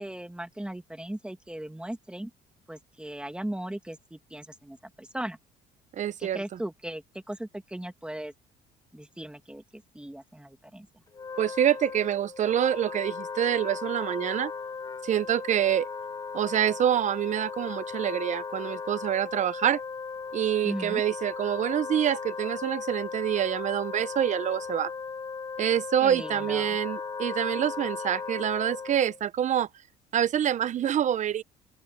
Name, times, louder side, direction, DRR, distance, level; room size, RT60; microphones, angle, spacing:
voice 1, 0.0-2.3 2.7-5.4 6.2-8.3 8.9-10.9 20.6-21.0 26.0-26.8, right 1 dB, 5° right, 2.2 m, -38 dB
voice 2, 5.9-6.4 11.4-14.5 15.0-15.9 16.3-19.8 20.3-24.9 25.6-29.7 30.1-31.4, right 10 dB, 45° right, 0.8 m, -26 dB
Wind instrument woodwind instrument, 11.1-29.2, left 5 dB, 25° left, 0.7 m, -37 dB
open air
cardioid pair, 110°, 17 cm